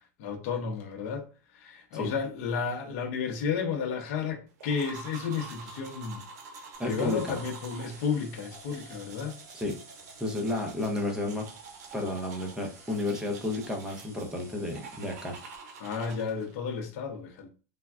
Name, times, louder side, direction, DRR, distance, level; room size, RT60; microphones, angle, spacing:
voice 1, 0.2-1.3 1.5-6.2 6.8-9.3 15.8-17.5, left 6 dB, 60° left, 0.6 m, -32 dB
sound 1, 4.6-16.6, right 4 dB, 70° right, 0.7 m, -47 dB
sound 2, 6.7-16.0, right 3 dB, 35° right, 0.9 m, -54 dB
voice 2, 6.8-7.4 9.5-9.8 10.2-11.5 11.9-15.4, left 2 dB, 5° right, 0.6 m, -32 dB
3.3 x 2.1 x 2.4 m
supercardioid pair, 145°, 9 cm